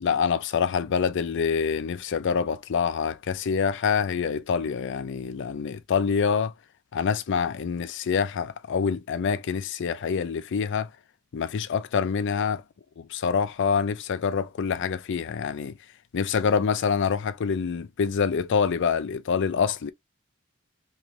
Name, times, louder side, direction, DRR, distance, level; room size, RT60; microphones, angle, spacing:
voice 1, 0.0-6.5 6.9-10.9 11.3-12.6 13.0-15.8 16.1-19.9, left 6 dB, 60° left, 0.4 m, -26 dB
3.2 x 2.6 x 2.9 m
head